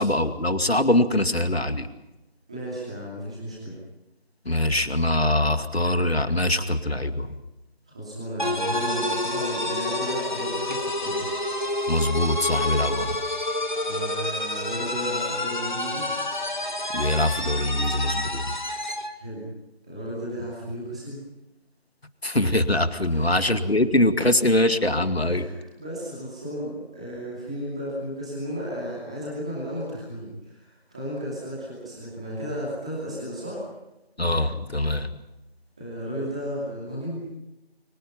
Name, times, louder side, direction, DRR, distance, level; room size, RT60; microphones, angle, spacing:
voice 1, 0.0-1.9 4.4-7.3 11.9-13.2 16.9-18.6 22.2-25.5 34.2-35.2, left 1 dB, 75° left, 9 dB, 2.3 m, -23 dB
voice 2, 2.5-3.8 7.9-11.3 13.8-16.1 19.1-19.5 19.8-21.2 23.1-23.8 25.3-33.6 35.8-37.3, equal, 5° right, -6 dB, 2.6 m, -34 dB
sound 1, 8.4-19.1, left 1 dB, 50° left, 1.9 m, -28 dB
25.0 x 24.5 x 5.7 m, 0.97 s
figure-of-eight pair, 170°, 31 cm